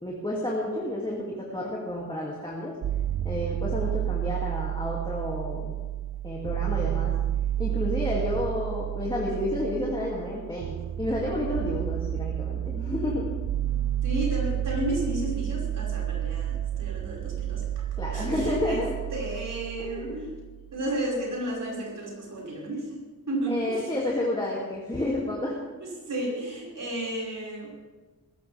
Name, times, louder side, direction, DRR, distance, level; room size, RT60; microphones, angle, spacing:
voice 1, 0.0-2.8 3.2-5.7 6.2-7.1 7.6-13.4 18.0-19.0 19.8-20.2 23.5-25.6, left 1 dB, 15° left, -4 dB, 2.6 m, -30 dB
sound 1, 2.8-20.8, right 11 dB, 50° right, 0.5 m, -31 dB
voice 2, 14.0-17.8 18.1-20.3 20.7-23.9 25.8-27.7, right 1 dB, 65° right, -3 dB, 5.7 m, -33 dB
21.0 x 14.5 x 3.5 m, 1.3 s
wide cardioid pair, 125°, 34 cm